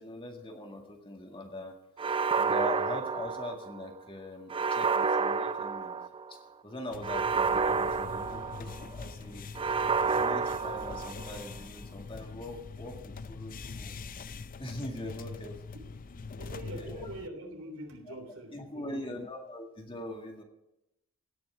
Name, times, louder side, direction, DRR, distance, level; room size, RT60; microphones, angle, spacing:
voice 1, 0.0-6.0 6.3-9.5 10.0-13.9 14.6-15.7 16.7-17.1 18.1-18.2 18.5-20.4, left 1 dB, 25° left, 2 dB, 2.0 m, -42 dB
sound 1, 2.0-3.9 4.5-6.3 7.0-8.9 9.6-11.4, right 5 dB, 25° right, 0.4 m, -29 dB
sound 2, 6.9-17.3, left 4 dB, 40° left, 0.5 m, -43 dB
voice 2, 16.4-19.2, right 1 dB, 80° right, 3 dB, 3.3 m, -44 dB
17.0 x 6.1 x 8.9 m, 0.89 s
head